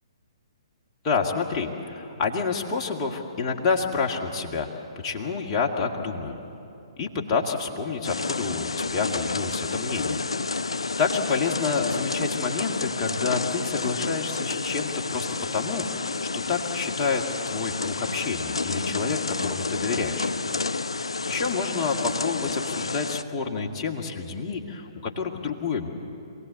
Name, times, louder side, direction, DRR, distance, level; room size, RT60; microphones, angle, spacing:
voice 1, 1.0-4.7 5.0-6.4 7.0-10.2 11.0-15.3 15.5-20.3 21.3-25.9, left 5 dB, 25° left, 1 dB, 2.0 m, -28 dB
sound 1, 8.0-23.2, left 4 dB, 70° left, 0.4 m, -30 dB
26.5 x 18.0 x 8.2 m, 2.8 s
figure-of-eight pair, 125°, 3 cm